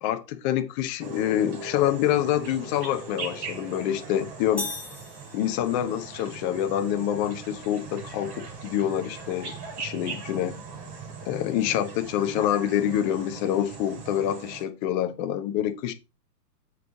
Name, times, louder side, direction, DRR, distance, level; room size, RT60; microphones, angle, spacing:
voice 1, 0.0-4.7 5.3-10.6 11.2-15.9, left 11 dB, 25° left, 0.9 m, -26 dB
sound 1, 1.0-14.6, right 4 dB, 35° right, 3.1 m, -40 dB
sound 2, 4.6-6.0, left 3 dB, 5° left, 1.6 m, -37 dB
8.3 x 4.9 x 4.6 m
hypercardioid pair, 130°, 50 cm